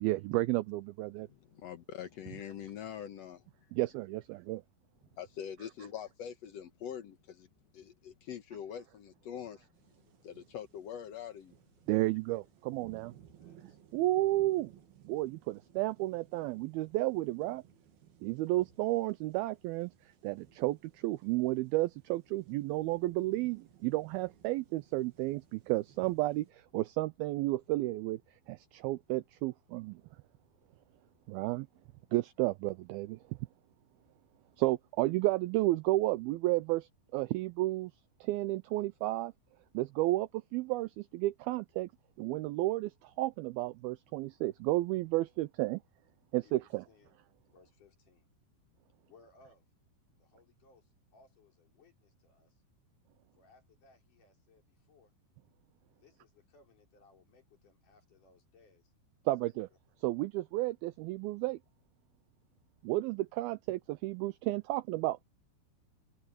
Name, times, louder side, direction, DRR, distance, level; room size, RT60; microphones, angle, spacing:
voice 1, 0.0-1.3 3.7-4.6 11.9-13.1 13.9-14.7 15.1-17.6 18.2-19.9 20.2-28.2 28.5-30.0 31.3-31.7 32.1-33.2 34.6-37.9 38.2-39.3 39.7-41.9 42.2-45.8 46.3-46.8 59.3-59.7 60.0-61.6 62.8-65.2, right 18 dB, 90° right, 2.1 m, -32 dB
voice 2, 1.2-3.4 5.2-7.5 7.7-9.7 10.2-11.5, left 9 dB, 80° left, 1.4 m, -44 dB
sound 1, 9.7-26.5, right 10 dB, 65° right, 4.3 m, -60 dB
voice 3, 13.4-13.8 18.3-18.4 46.4-47.2 47.5-48.3 49.1-49.6 50.2-52.6 53.3-55.1 56.0-58.9 59.4-59.5, left 3 dB, 50° left, 5.7 m, -64 dB
omnidirectional pair, 4.9 m